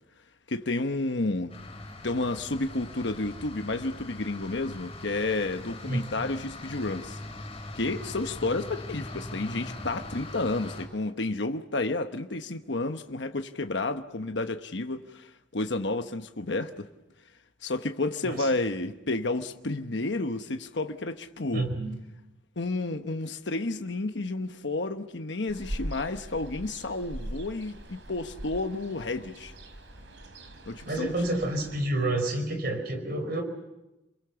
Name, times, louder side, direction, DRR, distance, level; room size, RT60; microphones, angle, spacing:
voice 1, 0.5-1.5 2.0-7.2 7.8-16.9 17.6-21.7 22.6-29.5 30.7-31.1, left 2 dB, 70° left, 1.1 m, -31 dB
sound 1, 1.5-10.9, left 2 dB, 30° left, 6.9 m, -41 dB
voice 2, 21.5-22.0 30.8-33.4, right 1 dB, 55° right, 4.6 m, -29 dB
Ocean, 25.5-31.8, right 1 dB, 90° right, 3.6 m, -41 dB
28.5 x 22.5 x 7.0 m
head